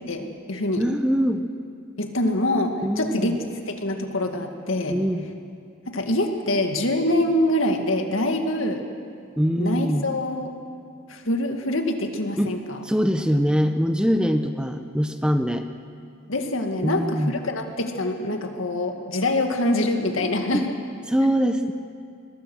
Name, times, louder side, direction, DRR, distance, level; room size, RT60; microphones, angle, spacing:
voice 1, 0.1-0.8 2.0-5.0 5.9-8.8 9.6-10.5 11.1-12.8 16.3-20.7, left 1 dB, 75° left, 4 dB, 2.0 m, -25 dB
voice 2, 0.8-1.5 2.8-3.4 4.9-5.3 9.4-10.1 12.4-12.6 12.8-15.7 16.8-17.3 20.5-20.7 21.0-21.7, equal, 5° right, 7 dB, 0.7 m, -23 dB
23.0 x 21.0 x 6.3 m, 2.4 s
head